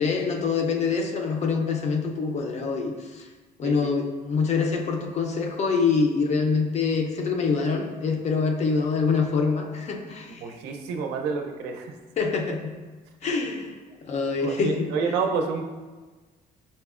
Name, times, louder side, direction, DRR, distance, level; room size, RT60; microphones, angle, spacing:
voice 1, 0.0-3.3 3.6-10.4 12.2-12.7 13.2-13.7 14.1-14.9, left 4 dB, 40° left, 3 dB, 0.5 m, -25 dB
voice 2, 10.4-11.9 14.4-15.6, right 5 dB, 90° right, 3 dB, 0.4 m, -29 dB
5.2 x 2.0 x 2.3 m, 1.3 s
cardioid pair, 110°, 17 cm